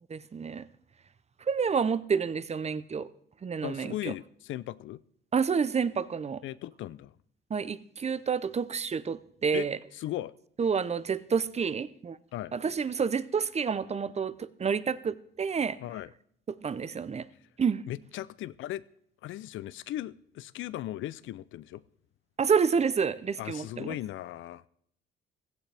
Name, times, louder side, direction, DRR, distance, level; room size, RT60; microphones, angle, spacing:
voice 1, 0.1-0.7 1.5-3.1 3.4-4.1 5.3-6.4 7.5-9.8 10.6-12.2 12.5-15.8 16.5-17.3 17.6-17.8 22.4-24.0, right 6 dB, 35° right, 0.7 m, -29 dB
voice 2, 3.6-5.0 6.4-7.1 9.5-9.7 9.9-10.3 12.3-12.5 15.8-16.1 17.9-18.8 19.2-21.8 23.4-24.6, left 14 dB, 80° left, 0.5 m, -37 dB
16.0 x 14.5 x 3.4 m
cardioid pair, 90°, 20 cm